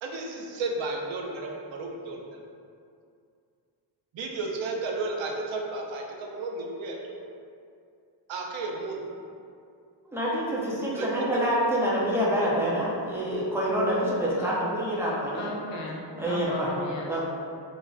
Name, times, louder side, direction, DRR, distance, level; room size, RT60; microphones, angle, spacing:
voice 1, 0.0-2.4 4.1-7.2 8.3-9.1 11.0-11.2, right 3 dB, 90° right, 0 dB, 0.5 m, -33 dB
voice 2, 10.1-15.5 16.2-16.7 17.1-17.2, equal, 5° right, -7 dB, 0.3 m, -26 dB
voice 3, 15.3-17.2, left 2 dB, 80° left, -1 dB, 0.6 m, -37 dB
3.2 x 2.4 x 2.3 m, 2.4 s
wide cardioid pair, 160°, 44 cm